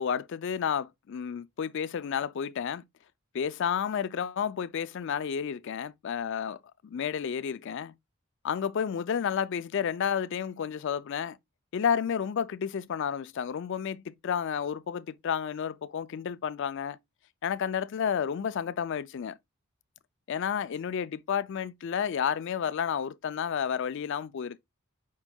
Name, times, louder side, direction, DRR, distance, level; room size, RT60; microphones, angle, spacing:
voice 1, 0.0-2.8 3.3-7.9 8.4-11.4 11.7-17.0 17.4-19.4 20.3-24.6, left 7 dB, 55° left, 0.3 m, -31 dB
5.4 x 4.4 x 2.2 m
head